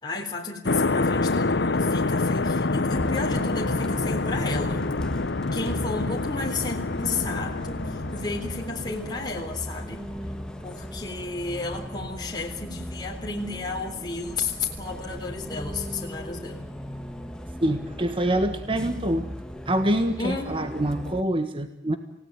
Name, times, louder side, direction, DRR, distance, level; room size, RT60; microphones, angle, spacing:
voice 1, 0.0-4.9 5.5-10.0 10.6-16.7 20.2-20.7, left 3 dB, 25° left, 0 dB, 3.6 m, -33 dB
sound 1, 0.7-9.7, left 3 dB, 80° left, 0.9 m, -27 dB
Bus, 2.9-21.2, equal, 5° left, 1.5 m, -37 dB
voice 2, 17.6-19.3 19.7-22.0, right 1 dB, 30° right, 8 dB, 1.6 m, -25 dB
28.0 x 18.0 x 9.2 m, 0.84 s
head